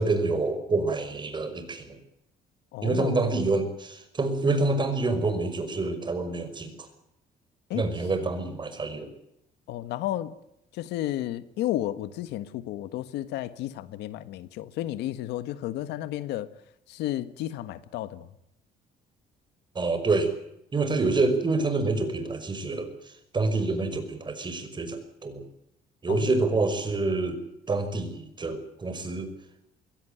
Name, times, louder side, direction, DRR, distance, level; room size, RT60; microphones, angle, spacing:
voice 1, 0.0-2.0 2.8-6.7 7.7-9.1 19.8-20.3 20.7-22.9 23.3-25.4 26.0-27.4 27.7-29.3, right 3 dB, 25° right, 9 dB, 5.4 m, -27 dB
voice 2, 2.7-3.3 7.7-7.9 9.7-10.3 10.7-16.5 16.9-18.3 26.1-26.4, left 13 dB, 85° left, 14 dB, 1.5 m, -32 dB
22.5 x 17.0 x 9.2 m, 0.82 s
cardioid pair, 110°, 17 cm